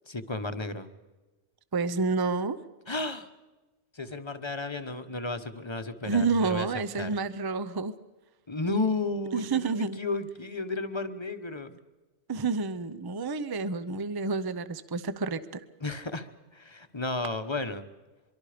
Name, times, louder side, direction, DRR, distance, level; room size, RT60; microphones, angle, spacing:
voice 1, 0.1-0.9 2.9-3.3 3.9-6.7 6.9-7.1 8.5-11.8 15.8-17.8, left 3 dB, 25° left, 9 dB, 1.1 m, -33 dB
voice 2, 1.7-2.6 6.0-7.9 9.3-10.0 12.3-15.6, right 4 dB, 25° right, 13 dB, 0.6 m, -29 dB
24.5 x 23.5 x 5.1 m, 1.2 s
omnidirectional pair, 1.3 m